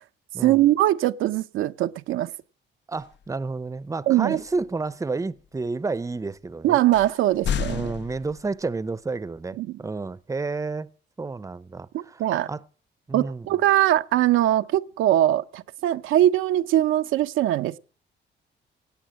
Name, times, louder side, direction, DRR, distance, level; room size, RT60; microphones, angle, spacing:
voice 1, 0.4-2.3 4.1-4.4 6.6-7.9 9.6-9.8 11.9-12.5 13.1-17.8, right 13 dB, 85° right, 0.7 m, -21 dB
voice 2, 2.9-6.8 7.6-10.9 11.2-12.6 13.1-13.5, right 3 dB, 15° right, 0.7 m, -30 dB
sound 1, 3.0-3.3 4.3-4.7 5.4-5.5 6.3-6.4 6.9-8.8, left 8 dB, 65° left, 0.7 m, -32 dB
17.0 x 8.7 x 7.4 m
cardioid pair, 90°, 20 cm